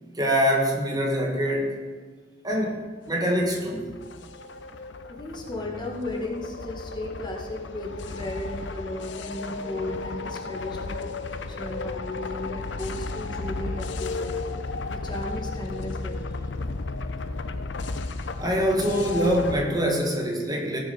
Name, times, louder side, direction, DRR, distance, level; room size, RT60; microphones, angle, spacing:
voice 1, 0.1-1.8 2.4-3.9 18.4-20.8, equal, 20° right, 0 dB, 1.9 m, -24 dB
sound 1, 3.6-19.6, left 3 dB, 85° left, 0.7 m, -34 dB
voice 2, 5.1-11.1 11.5-14.5 14.9-16.3, left 1 dB, 25° left, -1 dB, 1.9 m, -35 dB
17.0 x 7.0 x 5.5 m, 1.4 s
head